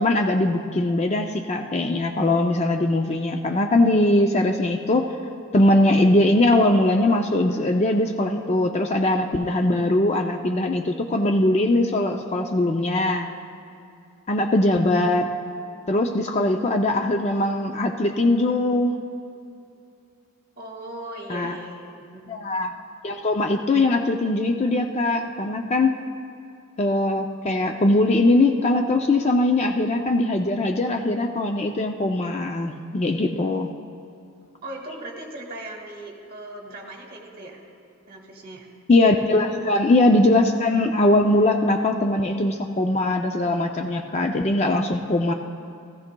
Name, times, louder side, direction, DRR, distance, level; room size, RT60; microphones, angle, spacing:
voice 1, 0.0-5.1 5.5-13.3 14.3-15.3 15.9-18.9 21.3-21.5 22.3-22.7 23.0-26.0 26.8-33.7 38.9-45.3, left 2 dB, 30° left, 4 dB, 0.4 m, -21 dB
voice 2, 20.5-22.3 34.6-37.6 38.1-38.7 39.5-39.6, right 1 dB, 40° right, -1 dB, 1.7 m, -38 dB
17.0 x 14.5 x 2.2 m, 2.5 s
head